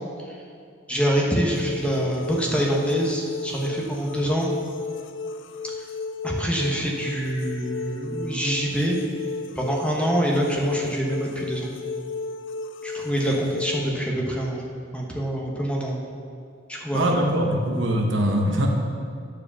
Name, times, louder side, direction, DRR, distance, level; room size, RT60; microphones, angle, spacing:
voice 1, 0.9-4.5 6.2-9.0 9.6-11.7 12.8-14.6 14.9-16.0 16.7-17.1, right 1 dB, 5° left, -2 dB, 1.1 m, -25 dB
sound 1, 1.5-13.9, left 4 dB, 65° left, 0.4 m, -34 dB
voice 2, 16.9-18.7, right 1 dB, 65° right, 1 dB, 1.1 m, -22 dB
9.5 x 5.0 x 6.9 m, 2.3 s
head